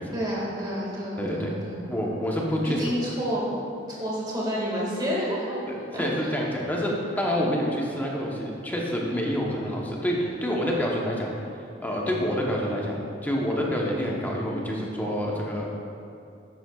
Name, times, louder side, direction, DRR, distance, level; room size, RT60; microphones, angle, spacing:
voice 1, 0.1-1.9 2.6-3.5 3.9-5.7 5.9-6.3, equal, 20° right, -5 dB, 1.8 m, -29 dB
voice 2, 1.2-1.5 1.9-2.9 5.7-15.7, equal, 10° left, -2 dB, 0.9 m, -28 dB
10.5 x 7.5 x 2.3 m, 2.6 s
head